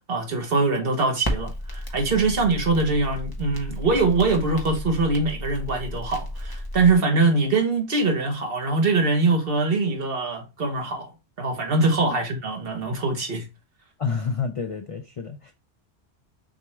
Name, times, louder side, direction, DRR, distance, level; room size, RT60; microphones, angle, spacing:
voice 1, 0.1-11.1 11.4-13.4, right 3 dB, 55° right, 1.2 m, -23 dB
Crackle, 1.2-7.0, equal, 20° left, 0.7 m, -33 dB
voice 2, 14.0-15.5, left 5 dB, 60° left, 0.3 m, -29 dB
6.3 x 2.3 x 3.0 m
omnidirectional pair, 1.2 m